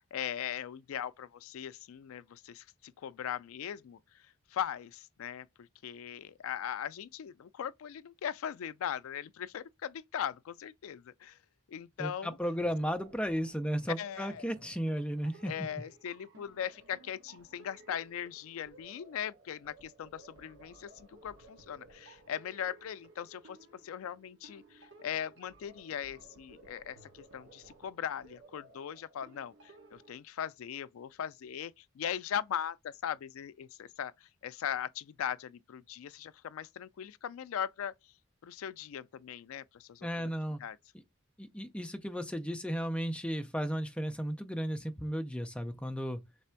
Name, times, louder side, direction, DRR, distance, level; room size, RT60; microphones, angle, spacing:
voice 1, 0.0-11.4 11.7-12.4 14.0-14.5 15.5-23.6 23.8-38.1 38.4-40.3 40.6-40.8, left 9 dB, 80° left, 0.3 m, -39 dB
voice 2, 12.0-15.7 40.0-40.6 41.4-46.2, equal, 5° left, 0.4 m, -34 dB
sound 1, 12.6-30.2, right 2 dB, 60° right, 1.3 m, -58 dB
3.3 x 3.3 x 4.4 m
head